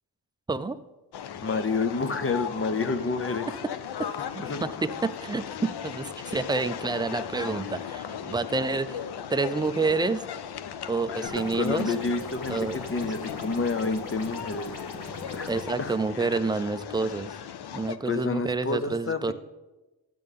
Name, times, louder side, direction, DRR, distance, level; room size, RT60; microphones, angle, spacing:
sound 1, 1.1-18.0, left 8 dB, 70° left, 0.6 m, -37 dB
voice 1, 1.4-3.5 4.4-4.6 11.1-14.8 15.3-15.5 15.8-15.9 18.0-19.3, left 4 dB, 35° left, 10 dB, 0.7 m, -29 dB
voice 2, 4.3-9.0 9.3-10.2 10.9-12.0 12.5-12.8 15.5-17.3 17.7-19.3, right 3 dB, 10° right, 10 dB, 0.3 m, -28 dB
sound 2, 11.3-15.7, left 2 dB, 50° left, 1.5 m, -41 dB
12.5 x 7.7 x 3.5 m, 1.1 s
wide cardioid pair, 105°, 41 cm